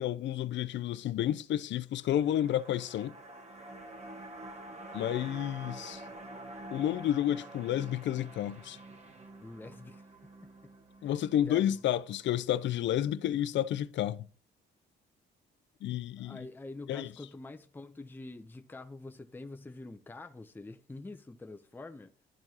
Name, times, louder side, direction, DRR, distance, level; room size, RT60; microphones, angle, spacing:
voice 1, 0.0-3.1 4.9-6.0 6.7-8.8 11.0-14.3 15.8-16.4 16.9-17.1, left 11 dB, 70° left, 0.5 m, -30 dB
sound 1, 1.9-12.4 12.7-12.8, right 1 dB, 35° right, 1.5 m, -48 dB
voice 2, 9.4-10.1 10.6-10.7 11.0-11.2 11.5-11.9 15.8-22.1, left 2 dB, 10° left, 0.6 m, -46 dB
12.0 x 4.4 x 2.8 m
cardioid pair, 90°, 20 cm